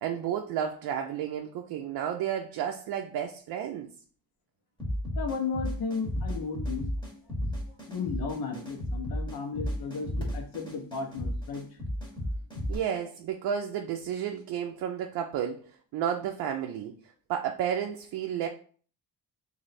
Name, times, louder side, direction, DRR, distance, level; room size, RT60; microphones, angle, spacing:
voice 1, 0.0-3.9 12.7-17.0 17.3-18.5, right 9 dB, 65° right, 0.5 m, -32 dB
sound 1, 4.8-12.7, equal, 10° left, 1.0 m, -33 dB
voice 2, 5.2-6.9 7.9-11.7, left 5 dB, 65° left, 1.0 m, -34 dB
3.1 x 2.7 x 4.1 m
cardioid pair, 140°, 40 cm